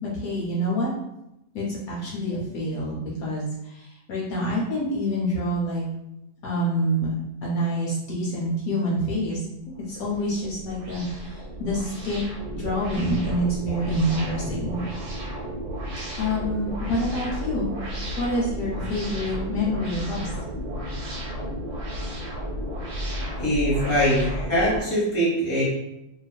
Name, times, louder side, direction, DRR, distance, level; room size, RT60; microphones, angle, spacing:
voice 1, 0.0-0.9 1.5-3.4 4.1-5.8 6.4-7.1 7.4-9.4 9.7-11.3 11.6-12.2 12.5-14.8 16.2-17.7 18.2-20.3, equal, 70° left, -5 dB, 1.0 m, -27 dB
sound 1, 9.7-24.8, equal, 75° right, 1.3 m, -33 dB
voice 2, 23.4-25.6, equal, 10° left, -8 dB, 1.0 m, -22 dB
2.6 x 2.4 x 2.2 m, 0.87 s
omnidirectional pair, 1.7 m